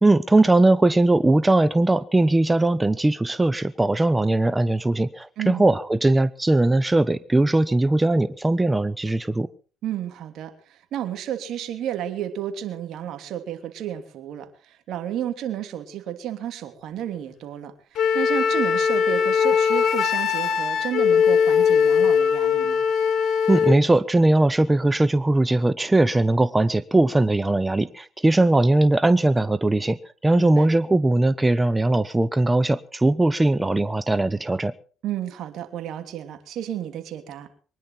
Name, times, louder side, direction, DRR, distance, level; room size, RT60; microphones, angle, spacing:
voice 1, 0.0-9.5 23.5-34.7, right 2 dB, 15° right, 16 dB, 0.8 m, -20 dB
voice 2, 9.8-22.8 30.3-30.7 35.0-37.5, right 11 dB, 65° right, 7 dB, 3.0 m, -32 dB
Wind instrument woodwind instrument, 18.0-23.8, left 7 dB, 60° left, 2.2 m, -20 dB
23.5 x 10.5 x 5.8 m, 0.41 s
supercardioid pair, 65°, 0 cm